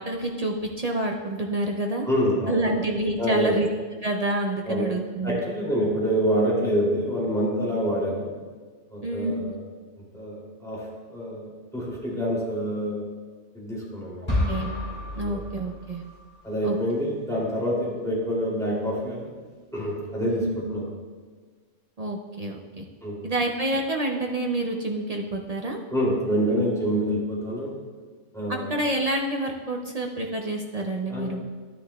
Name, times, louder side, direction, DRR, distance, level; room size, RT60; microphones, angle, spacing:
voice 1, 0.0-2.0 2.5-3.7 4.0-5.4 9.0-9.6 14.5-14.7 15.2-16.0 16.6-16.8 20.2-20.8 22.0-22.8 23.2-25.8 28.5-31.4, right 1 dB, 45° right, 1 dB, 0.5 m, -28 dB
voice 2, 2.1-2.7 3.2-3.6 4.6-4.9 5.2-8.3 8.9-9.6 10.0-13.1 13.5-14.4 15.2-15.4 16.4-19.3 19.7-20.9 23.0-23.2 25.9-27.7 28.3-28.7 31.1-31.4, equal, ahead, -6 dB, 2.7 m, -27 dB
sound 1, 14.3-16.3, left 1 dB, 20° left, 3.0 m, -30 dB
11.5 x 9.9 x 2.3 m, 1.5 s
omnidirectional pair, 1.3 m